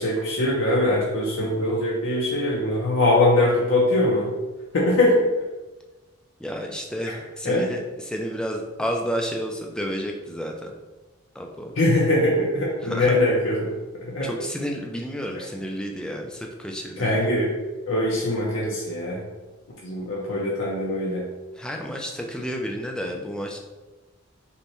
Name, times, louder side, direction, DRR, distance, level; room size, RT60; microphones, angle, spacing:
voice 1, 0.0-4.3 4.7-5.2 7.4-7.7 11.8-13.7 14.0-14.3 15.3-15.4 17.0-17.5 17.9-19.2 19.8-21.3, left 1 dB, 70° left, -4 dB, 0.6 m, -22 dB
voice 2, 6.4-10.7 11.4-11.7 12.8-13.1 14.2-17.3 21.6-23.6, equal, 5° left, 1 dB, 0.3 m, -31 dB
5.3 x 2.1 x 3.0 m, 1.2 s
head